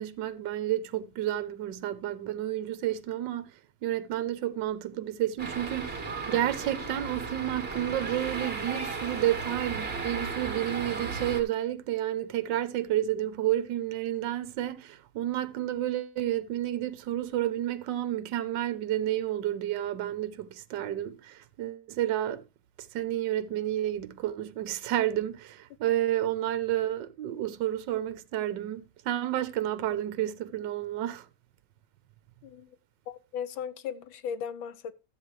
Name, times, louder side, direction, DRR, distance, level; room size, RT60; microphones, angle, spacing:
voice 1, 0.0-3.5 3.8-22.5 22.8-31.3, right 12 dB, 70° right, 1.5 m, -30 dB
sound 1, 5.4-11.4, right 4 dB, 30° right, 2.5 m, -35 dB
voice 2, 33.1-34.9, left 7 dB, 90° left, 1.6 m, -37 dB
13.5 x 8.2 x 3.2 m
omnidirectional pair, 2.1 m